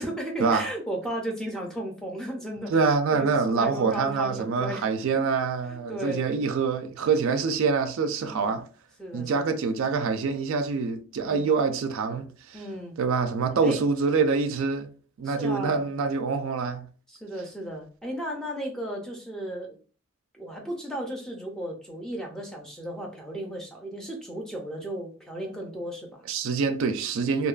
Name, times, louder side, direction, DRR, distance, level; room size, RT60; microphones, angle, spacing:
voice 1, 0.0-4.9 5.7-6.2 8.2-8.6 9.0-9.5 11.2-11.6 12.5-13.0 13.6-13.8 15.2-15.8 17.1-19.8 20.3-26.3, right 1 dB, 5° left, 0.4 m, -35 dB
voice 2, 2.7-8.6 9.1-12.6 13.0-14.9 15.2-16.9 26.3-27.5, right 5 dB, 65° right, 0.3 m, -25 dB
2.8 x 2.2 x 2.3 m
head